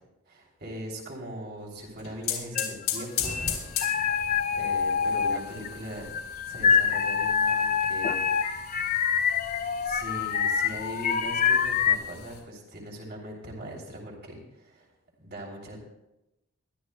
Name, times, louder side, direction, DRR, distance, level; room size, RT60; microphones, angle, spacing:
voice 1, 0.3-3.4 3.8-4.2 4.5-6.1 6.5-8.3 9.8-14.9 15.2-15.8, equal, 50° right, -1 dB, 3.0 m, -40 dB
sound 1, 1.8-12.4, left 8 dB, 85° left, 3.5 m, -38 dB
sound 2, 2.6-3.5 3.8-5.8 6.1-12.0, left 6 dB, 40° left, 0.4 m, -26 dB
22.5 x 12.0 x 2.2 m, 0.92 s
head